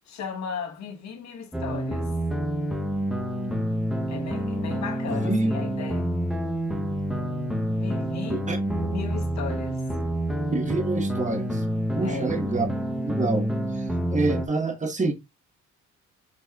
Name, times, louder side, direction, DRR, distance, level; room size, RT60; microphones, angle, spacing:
voice 1, 0.1-2.1 4.1-6.2 7.7-8.4 8.7-9.8 12.0-12.4, left 6 dB, 65° left, 1.1 m, -36 dB
sound 1, 1.5-14.5, equal, ahead, 0.8 m, -28 dB
voice 2, 5.1-5.5 8.3-8.6 10.5-11.6 11.9-12.6 13.0-13.5 13.7-13.8 14.1-15.1, right 3 dB, 25° right, 1.2 m, -27 dB
6.1 x 3.0 x 2.3 m
cardioid pair, 90°, 30 cm